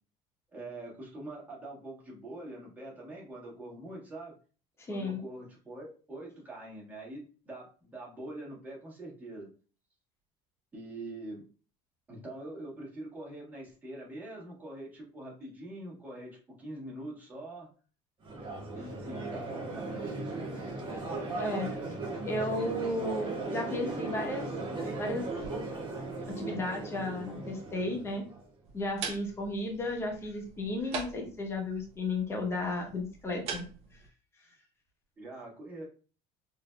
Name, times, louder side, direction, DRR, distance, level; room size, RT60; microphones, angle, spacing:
voice 1, 0.5-4.3 4.9-9.5 10.7-11.4 12.1-17.7 18.7-20.0 26.5-26.6 35.2-35.8, right 1 dB, 10° right, -5 dB, 1.5 m, -44 dB
voice 2, 4.8-5.2 21.3-21.7 22.2-24.5 25.0-25.3 26.3-28.2 28.7-33.7, left 2 dB, 20° left, 2 dB, 0.9 m, -34 dB
Crowd, 18.2-28.4, right 3 dB, 30° right, 1.4 m, -37 dB
sound 1, 28.6-34.1, right 5 dB, 45° right, 0.8 m, -43 dB
3.9 x 2.7 x 2.2 m, 0.38 s
cardioid pair, 155°, 14 cm